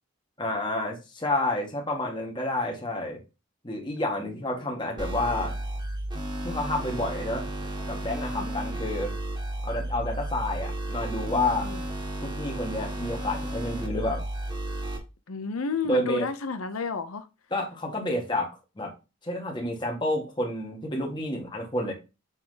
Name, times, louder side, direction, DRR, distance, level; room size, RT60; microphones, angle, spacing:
voice 1, 0.4-3.2 3.6-5.5 6.4-7.5 7.9-9.1 9.6-11.7 12.2-14.2 15.8-16.3 17.5-18.9 19.2-21.9, left 1 dB, 20° left, 1.9 m, -29 dB
sound 1, 5.0-15.0, right 1 dB, 20° right, 1.7 m, -33 dB
voice 2, 15.3-17.3, left 5 dB, 90° left, 0.7 m, -31 dB
8.4 x 3.6 x 3.9 m
head